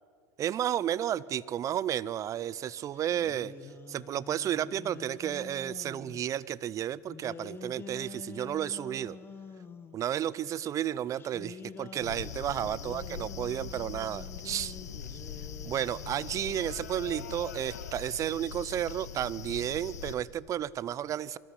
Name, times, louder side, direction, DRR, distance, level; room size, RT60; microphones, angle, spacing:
voice 1, 0.4-3.5 3.9-9.2 9.9-14.8 15.6-21.4, right 10 dB, 40° right, 22 dB, 0.6 m, -32 dB
sound 1, 2.9-6.2 7.1-10.0 11.2-16.4, left 5 dB, 25° left, 1.6 m, -47 dB
sound 2, 12.0-20.2, left 7 dB, 90° left, 1.5 m, -42 dB
23.5 x 14.0 x 9.8 m, 2.3 s
hypercardioid pair, 90°, 9 cm